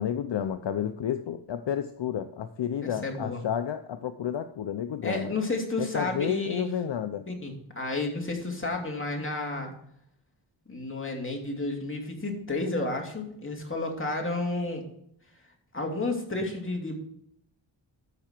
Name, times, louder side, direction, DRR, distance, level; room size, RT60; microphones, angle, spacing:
voice 1, 0.0-5.3 5.8-7.2, left 9 dB, 65° left, 9 dB, 0.7 m, -31 dB
voice 2, 2.8-3.4 5.0-6.7 7.3-9.7 10.7-14.8 15.7-16.9, left 2 dB, 25° left, 1 dB, 2.7 m, -31 dB
13.5 x 5.9 x 4.5 m, 0.71 s
wide cardioid pair, 75°, 47 cm